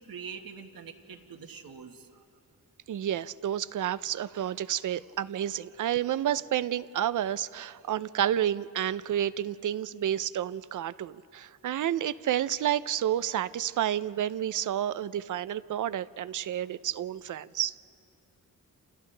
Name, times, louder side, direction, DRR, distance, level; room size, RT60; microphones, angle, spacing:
voice 1, 0.0-2.2, right 6 dB, 85° right, 4 dB, 1.6 m, -44 dB
voice 2, 2.9-17.7, right 11 dB, 60° right, 16 dB, 0.5 m, -30 dB
29.0 x 29.0 x 3.3 m, 2.5 s
wide cardioid pair, 150°, 34 cm